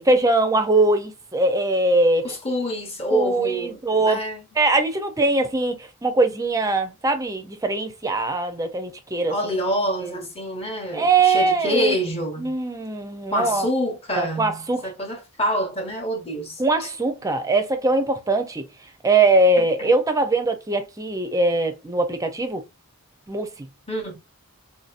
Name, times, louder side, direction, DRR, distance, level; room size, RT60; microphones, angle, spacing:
voice 1, 0.0-2.3 3.1-4.2 4.6-9.3 10.9-12.0 12.4-13.7 14.2-14.8 16.6-18.6 19.0-22.6 23.3-23.5, right 2 dB, 15° right, 0.5 m, -21 dB
voice 2, 2.2-4.4 9.3-12.5 13.3-16.9 19.6-19.9 23.9-24.2, equal, 25° left, 0.8 m, -27 dB
3.7 x 2.7 x 2.4 m
head